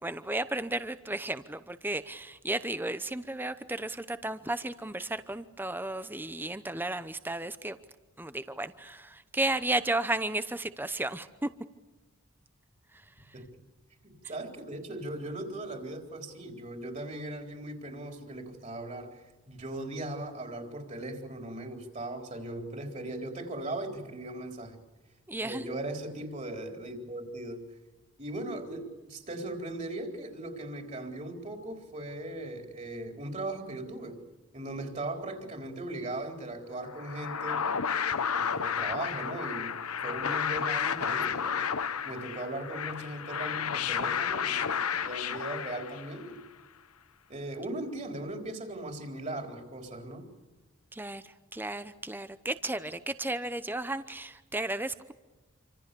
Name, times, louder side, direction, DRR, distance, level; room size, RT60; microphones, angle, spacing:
voice 1, 0.0-7.8 8.2-11.5 12.9-13.3 25.3-25.7 50.9-55.1, right 2 dB, 10° right, 12 dB, 0.8 m, -34 dB
voice 2, 14.0-24.8 25.4-27.7 28.2-34.2 34.5-37.6 38.3-41.6 42.0-46.4 47.3-50.3, right 1 dB, 30° right, 3 dB, 4.1 m, -38 dB
sound 1, 36.9-46.3, left 7 dB, 90° left, 1.1 m, -32 dB
28.0 x 26.0 x 7.0 m, 1.2 s
head